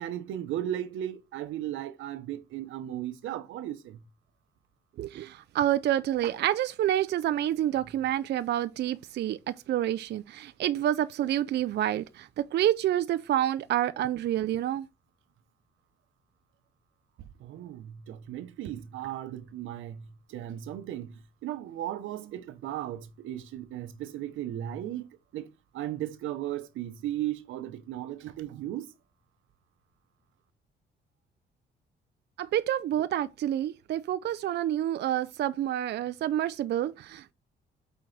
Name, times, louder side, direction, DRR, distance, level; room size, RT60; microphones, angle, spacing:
voice 1, 0.0-4.0 17.4-28.9, right 12 dB, 85° right, 0.9 m, -36 dB
voice 2, 5.0-14.9 32.4-37.3, right 12 dB, 60° right, 0.4 m, -28 dB
6.1 x 4.4 x 3.9 m
cardioid pair, 90°, 20 cm